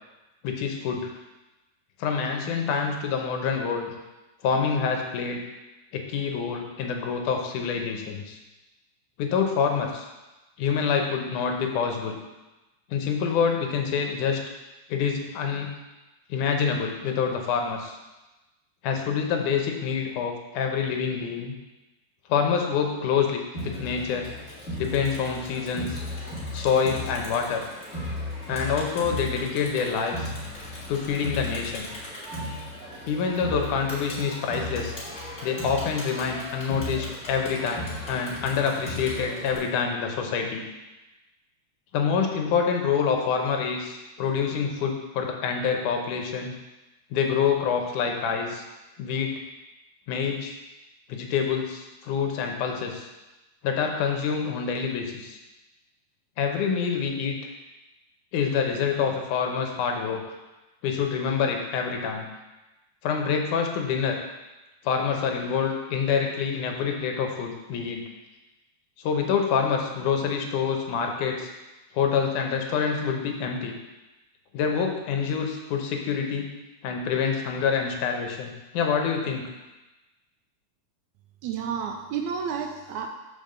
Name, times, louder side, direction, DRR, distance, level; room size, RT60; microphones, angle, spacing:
voice 1, 0.4-1.1 2.0-3.9 4.4-5.4 5.9-8.4 9.2-10.1 10.6-12.2 12.9-14.4 14.9-15.7 16.3-18.0 18.8-21.5 22.3-24.3 24.8-26.0 26.5-27.6 28.5-30.3 30.9-31.9 33.1-35.0 35.4-40.6 41.9-46.5 47.1-48.6 49.0-49.3 50.1-50.6 51.1-53.1 53.6-55.4 56.4-57.4 58.3-60.2 60.8-62.3 63.0-64.2 64.8-68.0 69.0-71.5 71.9-73.7 74.5-76.5 76.8-79.5, left 6 dB, 80° left, 3 dB, 2.4 m, -26 dB
Crowd, 23.5-39.6, left 1 dB, 25° left, 1.8 m, -36 dB
voice 2, 81.4-83.1, right 7 dB, 80° right, 4 dB, 1.8 m, -31 dB
5.3 x 5.2 x 6.5 m, 1.1 s
omnidirectional pair, 3.5 m